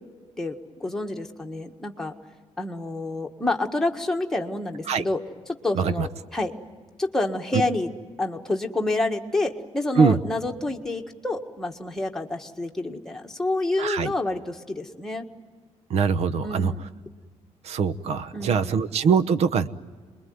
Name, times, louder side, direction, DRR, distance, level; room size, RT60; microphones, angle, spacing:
voice 1, 0.4-2.1 2.6-6.5 7.0-7.9 8.2-15.3 16.4-16.8 18.3-18.8, left 2 dB, 5° left, 2 dB, 1.6 m, -28 dB
voice 2, 5.7-6.1 10.0-10.2 13.8-14.1 15.9-16.7 17.6-19.7, right 6 dB, 65° right, 14 dB, 1.0 m, -22 dB
28.5 x 22.0 x 9.5 m, 1.5 s
cardioid pair, 165°, 12 cm